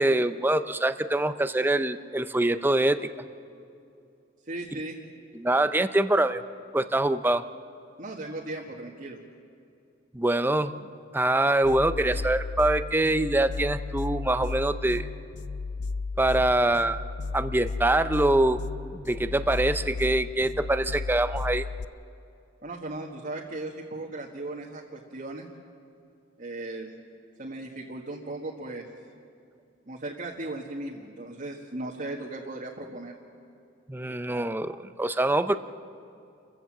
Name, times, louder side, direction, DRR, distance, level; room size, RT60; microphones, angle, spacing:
voice 1, 0.0-3.0 5.3-6.4 6.7-7.4 10.1-10.7 11.1-15.0 16.2-17.0 17.3-18.6 18.9-21.6 33.9-35.6, right 1 dB, 10° right, 11 dB, 0.6 m, -24 dB
voice 2, 4.5-5.0 8.0-9.2 22.6-25.5 26.4-26.9 27.4-28.8 29.9-33.1, right 2 dB, 45° right, -2 dB, 1.6 m, -37 dB
sound 1, 11.6-21.8, left 4 dB, 65° left, 0.4 m, -34 dB
28.5 x 15.5 x 7.4 m, 2.6 s
head